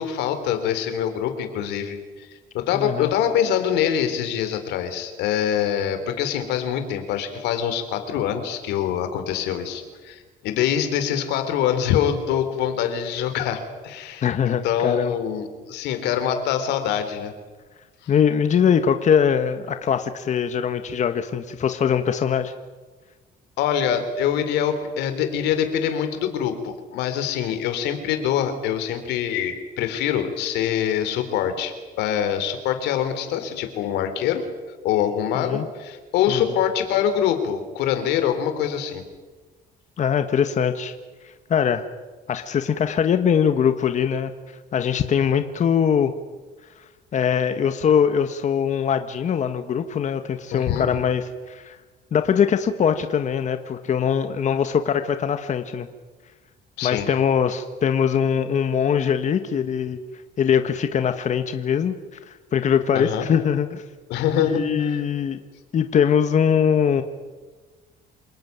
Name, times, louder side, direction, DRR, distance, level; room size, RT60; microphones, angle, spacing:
voice 1, 0.0-2.3 2.5-17.3 23.6-34.4 34.8-39.0 50.5-50.9 56.8-57.1 62.9-63.3 64.1-65.0, left 9 dB, 90° left, 8 dB, 3.7 m, -24 dB
voice 2, 2.7-3.1 14.2-15.2 18.1-22.5 35.3-35.7 36.3-36.4 40.0-40.9 41.2-41.9 42.3-44.3 44.7-46.1 47.1-51.8 52.1-55.9 56.8-60.0 60.4-62.0 62.3-63.8 64.5-65.4 65.7-67.0, left 7 dB, 45° left, 8 dB, 1.5 m, -22 dB
27.5 x 19.0 x 9.5 m, 1.3 s
cardioid pair, 110°, 17 cm